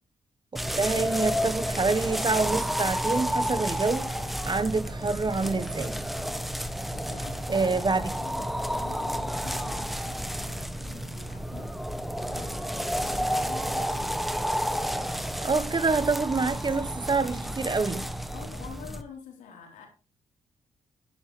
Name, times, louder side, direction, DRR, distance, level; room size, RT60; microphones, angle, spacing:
sound 1, 0.6-19.0, equal, ahead, 1.4 m, -31 dB
voice 1, 0.7-4.1 4.5-6.0 7.5-8.1 15.4-18.1, right 4 dB, 35° right, 1.4 m, -27 dB
voice 2, 6.9-11.7 12.2-14.2 18.3-19.9, left 6 dB, 80° left, 4.2 m, -47 dB
13.5 x 10.5 x 3.4 m
hypercardioid pair, 45°, 13 cm